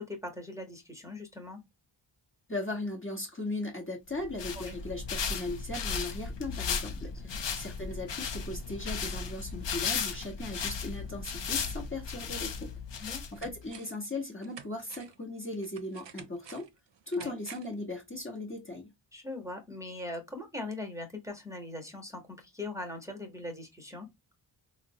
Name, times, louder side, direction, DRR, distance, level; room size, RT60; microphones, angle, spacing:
voice 1, 0.0-1.6 4.5-4.7 7.3-7.6 13.0-13.5 17.2-17.3 19.1-24.1, left 2 dB, 5° right, 1.0 m, -41 dB
voice 2, 2.5-12.7 13.0-16.7 17.1-18.9, left 2 dB, 25° left, 0.9 m, -38 dB
sound 1, 4.1-13.6, left 6 dB, 65° left, 0.6 m, -35 dB
sound 2, 13.0-14.1 14.4-17.8 18.1-18.2, right 7 dB, 65° right, 0.5 m, -51 dB
3.7 x 2.1 x 2.7 m
wide cardioid pair, 45°, 48 cm